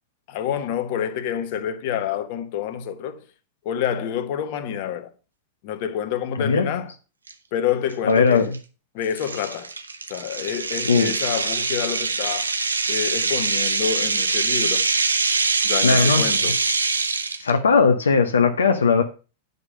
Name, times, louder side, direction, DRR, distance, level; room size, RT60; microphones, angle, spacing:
voice 1, 0.3-3.2 3.6-5.1 5.6-6.9 7.5-8.4 8.9-9.7 10.1-12.5 12.9-14.9 15.6-16.5, left 9 dB, 50° left, 1.2 m, -27 dB
voice 2, 6.4-6.8 8.0-8.6 10.8-11.2 15.8-16.5 17.4-19.0, left 5 dB, 80° left, 0.8 m, -19 dB
sound 1, 7.3-7.4 7.9-8.1 8.5-8.6 9.2-17.5, right 4 dB, 85° right, 0.8 m, -23 dB
9.7 x 5.4 x 5.2 m
figure-of-eight pair, 95°, 0 cm